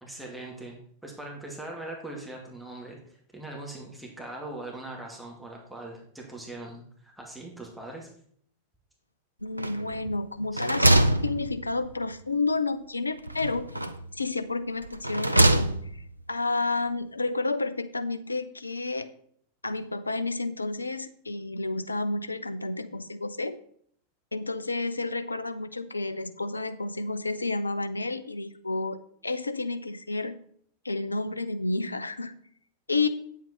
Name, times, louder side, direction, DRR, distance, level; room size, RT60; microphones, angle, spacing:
voice 1, 0.0-0.8 1.0-8.1 10.5-10.6, right 2 dB, 5° right, -1 dB, 2.2 m, -41 dB
voice 2, 9.4-11.0 11.2-13.7 14.1-19.1 19.6-23.6 24.3-30.4 30.8-32.3 32.9-33.1, left 3 dB, 80° left, 12 dB, 0.6 m, -30 dB
sound 1, 9.6-10.1 10.4-12.0 13.3-14.1 14.8-16.1, right 1 dB, 85° right, 0.5 m, -24 dB
9.0 x 7.6 x 4.4 m, 0.63 s
figure-of-eight pair, 90°, 0 cm